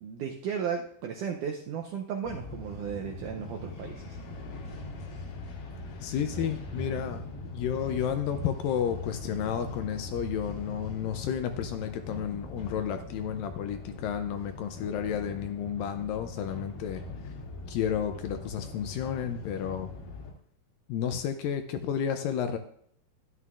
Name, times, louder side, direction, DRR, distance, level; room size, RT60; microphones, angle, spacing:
voice 1, 0.0-4.2, right 7 dB, 85° right, 2 dB, 1.8 m, -35 dB
sound 1, 2.2-20.3, left 2 dB, 65° left, 3.0 m, -41 dB
voice 2, 6.0-7.2 7.5-17.3 17.7-19.9 20.9-22.6, left 8 dB, 80° left, 8 dB, 2.1 m, -32 dB
12.5 x 11.0 x 2.4 m, 0.63 s
omnidirectional pair, 4.4 m